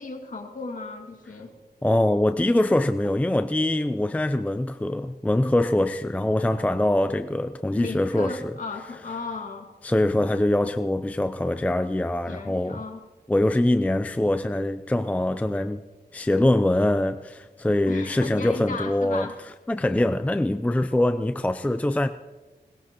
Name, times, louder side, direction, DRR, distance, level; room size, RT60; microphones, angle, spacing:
voice 1, 0.0-1.5 7.8-9.7 12.3-13.0 17.9-19.4, left 3 dB, 50° left, 2.1 m, -35 dB
voice 2, 1.8-8.4 9.8-12.8 13.3-15.8 16.1-19.3 19.7-22.1, left 1 dB, 10° left, 0.4 m, -23 dB
21.5 x 19.5 x 2.9 m
wide cardioid pair, 120°, 17 cm